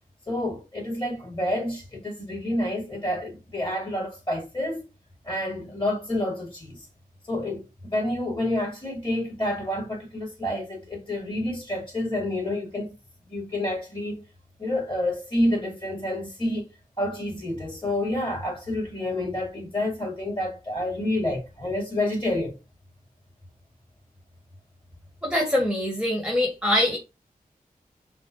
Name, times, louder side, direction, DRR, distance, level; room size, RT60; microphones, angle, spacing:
voice 1, 0.3-4.9 5.2-6.8 7.3-12.9 13.3-14.2 14.6-16.7 17.0-22.6, left 1 dB, 30° left, 2.5 m, -28 dB
voice 2, 25.2-27.0, left 1 dB, 5° right, 1.3 m, -23 dB
5.9 x 2.2 x 2.6 m
cardioid pair, 40°, 16 cm